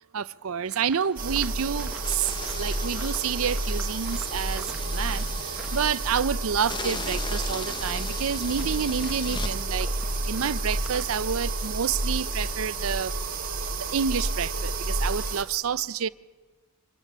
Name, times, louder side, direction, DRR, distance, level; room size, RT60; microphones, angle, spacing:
voice 1, 0.1-9.9 10.3-13.1 13.9-16.1, right 7 dB, 70° right, 0.6 m, -29 dB
sound 1, 0.6-11.5, right 1 dB, 5° right, 1.2 m, -47 dB
sound 2, 1.2-15.4, right 2 dB, 40° right, 1.7 m, -30 dB
sound 3, 2.0-6.1 6.7-9.5, left 4 dB, 20° left, 0.8 m, -39 dB
25.5 x 17.0 x 6.7 m
head